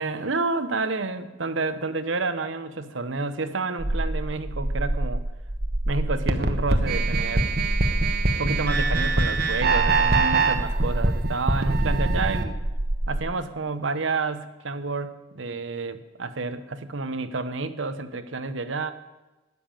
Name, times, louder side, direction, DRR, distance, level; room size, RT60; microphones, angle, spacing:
voice 1, 0.0-5.2 5.9-7.5 8.4-12.6 13.1-18.9, right 3 dB, 70° right, 11 dB, 1.0 m, -29 dB
sound 1, 3.8-13.2, right 1 dB, 35° right, 0.9 m, -28 dB
sound 2, 6.3-12.4, right 3 dB, 55° right, 1.3 m, -23 dB
12.5 x 9.6 x 8.9 m, 1.1 s
head